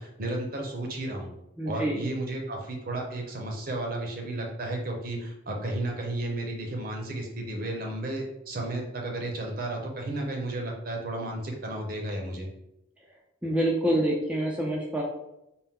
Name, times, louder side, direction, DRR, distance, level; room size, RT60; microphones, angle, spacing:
voice 1, 0.0-1.3 1.7-12.5, right 1 dB, 50° right, 1 dB, 0.7 m, -33 dB
voice 2, 1.6-2.0 13.4-15.0, right 1 dB, 5° right, -3 dB, 0.4 m, -26 dB
4.3 x 2.0 x 3.6 m, 0.86 s
head